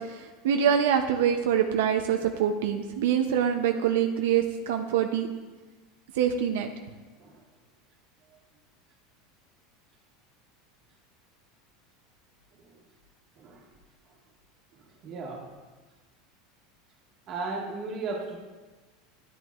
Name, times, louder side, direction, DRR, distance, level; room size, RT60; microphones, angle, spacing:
voice 1, 0.0-5.3 6.1-6.7, right 8 dB, 85° right, 5 dB, 0.5 m, -25 dB
voice 2, 13.4-13.7 14.7-15.5 17.3-18.4, right 3 dB, 40° right, 0 dB, 1.5 m, -36 dB
11.0 x 9.0 x 2.4 m, 1.3 s
supercardioid pair, 145°, 0 cm